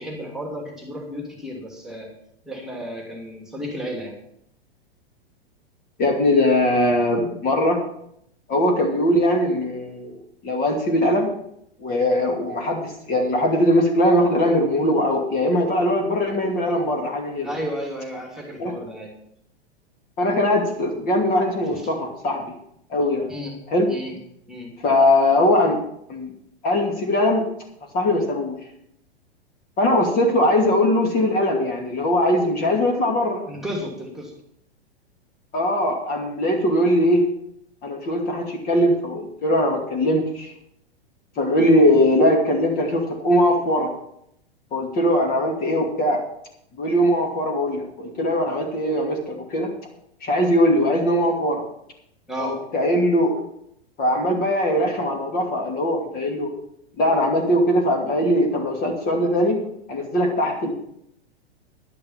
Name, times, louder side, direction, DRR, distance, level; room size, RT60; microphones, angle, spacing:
voice 1, 0.0-2.1 2.4-4.1 17.4-19.1 21.7-21.9 23.3-23.6 23.9-24.2 24.5-24.7 33.5-34.3 52.3-52.6, equal, ahead, 1 dB, 2.7 m, -33 dB
voice 2, 6.0-7.8 8.5-10.2 10.4-11.3 11.8-17.5 18.6-18.7 20.2-22.5 22.9-23.3 23.7-23.9 24.8-25.8 26.1-26.3 26.6-27.4 27.9-28.5 29.8-33.4 35.5-37.2 37.8-40.5 41.4-43.9 44.7-46.2 46.8-49.7 50.2-51.6 52.4-53.3 54.0-56.5 57.0-59.6 59.9-60.7, left 1 dB, 30° left, 2 dB, 2.5 m, -20 dB
11.0 x 10.5 x 5.7 m, 0.74 s
figure-of-eight pair, 100°, 31 cm